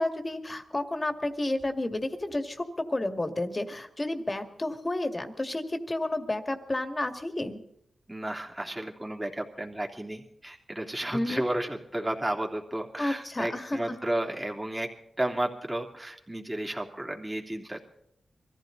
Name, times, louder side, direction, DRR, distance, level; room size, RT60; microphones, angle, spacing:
voice 1, 0.0-7.6 11.1-11.4 13.0-14.0, left 1 dB, 30° left, 6 dB, 2.1 m, -31 dB
voice 2, 8.1-14.9 15.2-17.8, right 1 dB, 15° right, 1 dB, 3.0 m, -33 dB
23.5 x 14.5 x 4.0 m, 0.73 s
cardioid pair, 65°, 0 cm